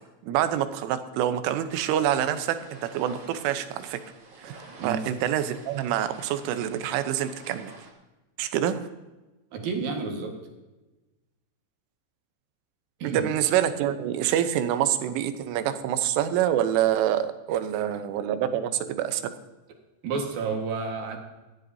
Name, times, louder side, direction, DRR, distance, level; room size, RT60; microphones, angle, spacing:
voice 1, 0.2-4.0 4.4-4.6 4.8-7.7 8.4-8.8 13.0-19.3, right 11 dB, 90° right, 10 dB, 3.4 m, -26 dB
sound 1, 1.7-7.9, right 2 dB, 40° right, 2.2 m, -49 dB
voice 2, 9.5-10.3 13.0-13.3 20.0-21.2, right 4 dB, 60° right, 2 dB, 2.8 m, -30 dB
18.0 x 13.5 x 2.7 m, 1.1 s
omnidirectional pair, 5.5 m